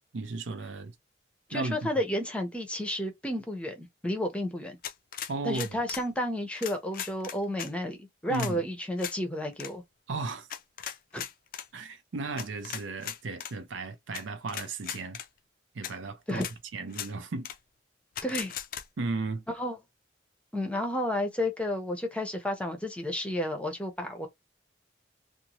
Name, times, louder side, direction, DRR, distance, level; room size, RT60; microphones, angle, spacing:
voice 1, 0.1-0.9 1.5-1.9 5.3-5.8 8.3-8.6 10.1-10.5 11.7-15.2 15.7-16.4 16.7-17.5 19.0-19.4, right 3 dB, 85° right, 0.5 m, -35 dB
voice 2, 1.5-4.8 5.4-9.8 11.1-11.2 16.3-16.5 18.2-18.6 19.5-19.8 20.5-24.3, left 1 dB, 5° left, 0.6 m, -31 dB
sound 1, 4.8-6.1 6.6-7.7 8.3-8.5 9.0-9.2 9.5-9.7 10.5-11.7 12.4-13.5 14.1-14.2 14.5-15.3 15.8-15.9 16.4-16.5 16.9-17.1 17.4-17.6 18.2-18.8, left 9 dB, 50° left, 0.3 m, -38 dB
2.6 x 2.1 x 2.9 m
head